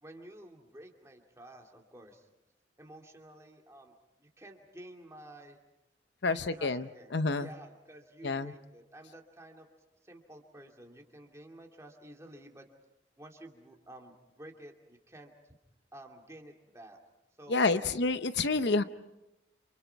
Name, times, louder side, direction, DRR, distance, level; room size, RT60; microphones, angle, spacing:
voice 1, 0.0-2.3 2.8-3.9 4.2-5.6 6.2-9.7 10.0-12.7 13.2-15.3 15.9-17.0 17.4-18.0, right 1 dB, 15° right, 1 dB, 2.5 m, -51 dB
voice 2, 6.2-6.9 7.1-7.5 8.2-8.5 17.5-18.8, left 3 dB, 60° left, 11 dB, 0.7 m, -28 dB
29.5 x 28.0 x 4.6 m, 0.94 s
head